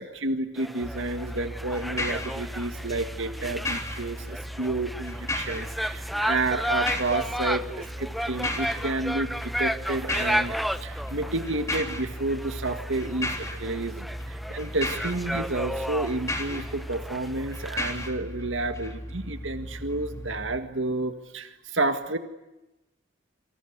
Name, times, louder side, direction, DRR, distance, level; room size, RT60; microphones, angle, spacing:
voice 1, 0.0-22.2, right 2 dB, 85° right, 8 dB, 1.9 m, -30 dB
sound 1, 0.6-18.1, equal, ahead, 0.9 m, -33 dB
sound 2, 0.8-20.6, left 1 dB, 15° left, 3.5 m, -35 dB
27.5 x 25.5 x 8.1 m, 0.99 s
head